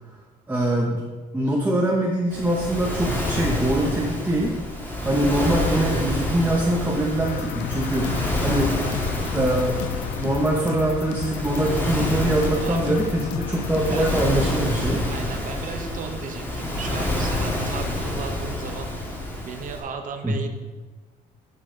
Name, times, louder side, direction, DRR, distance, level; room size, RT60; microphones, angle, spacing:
voice 1, 0.5-1.0 1.3-4.5 5.0-8.7 9.3-9.8 10.2-15.0 20.2-20.4, right 1 dB, 10° right, -2 dB, 1.0 m, -23 dB
Waves surf, 2.3-19.8, left 1 dB, 10° left, 2.0 m, -28 dB
sound 1, 7.2-14.2, left 12 dB, 90° left, 0.4 m, -33 dB
voice 2, 12.6-13.0 13.9-14.3 15.1-18.9 19.4-20.5, right 5 dB, 50° right, 6 dB, 1.0 m, -35 dB
11.0 x 5.8 x 3.9 m, 1.3 s
cardioid pair, 110°, 17 cm